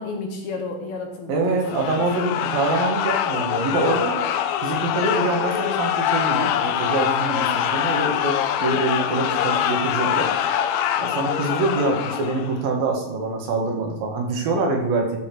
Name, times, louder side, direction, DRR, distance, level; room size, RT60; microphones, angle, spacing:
voice 1, 0.0-2.5, left 3 dB, 60° left, 3 dB, 2.4 m, -32 dB
voice 2, 1.3-4.2 4.6-10.3 11.0-15.2, right 3 dB, 80° right, 2 dB, 3.6 m, -25 dB
sound 1, 1.6-12.6, left 10 dB, 85° left, 1.6 m, -24 dB
13.5 x 5.5 x 6.1 m, 0.86 s
omnidirectional pair, 4.1 m